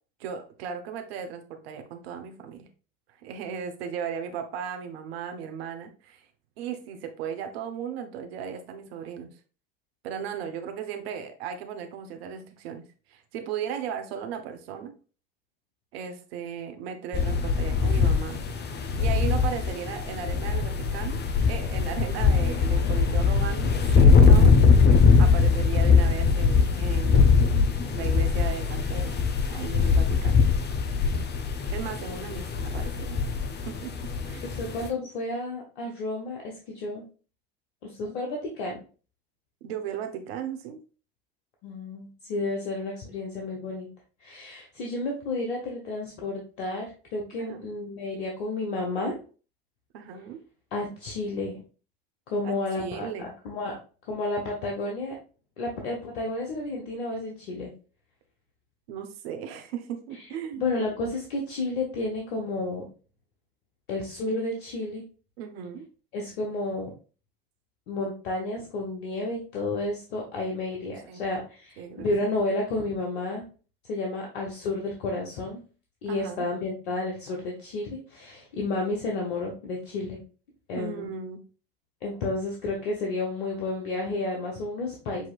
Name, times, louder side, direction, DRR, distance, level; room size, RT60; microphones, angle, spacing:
voice 1, 0.2-2.7 3.2-6.3 6.6-9.3 10.0-12.8 13.1-14.9 15.9-18.4 18.8-21.2 21.5-24.8 25.2-27.4 27.9-29.2 29.5-30.4 31.7-33.2 33.6-33.9 34.2-34.5 39.6-40.8 47.4-47.6 49.9-50.4 52.4-53.3 58.9-60.6 65.4-65.9 71.1-71.3 71.8-72.1 76.1-76.4 80.7-81.4, right 8 dB, 75° right, 6 dB, 0.9 m, -36 dB
sound 1, 17.1-34.9, left 5 dB, 35° left, 0.8 m, -21 dB
voice 2, 34.4-37.0 37.8-38.8 41.6-43.9 44.2-49.1 50.7-51.6 52.3-53.1 53.4-53.8 54.1-55.1 55.6-57.7 60.6-62.8 63.9-65.0 66.1-66.9 67.9-73.4 73.9-75.6 76.0-80.2 80.7-81.1 82.0-85.3, left 2 dB, 80° left, 0 dB, 1.2 m, -31 dB
7.1 x 2.9 x 2.4 m, 0.36 s
hypercardioid pair, 80°, 31 cm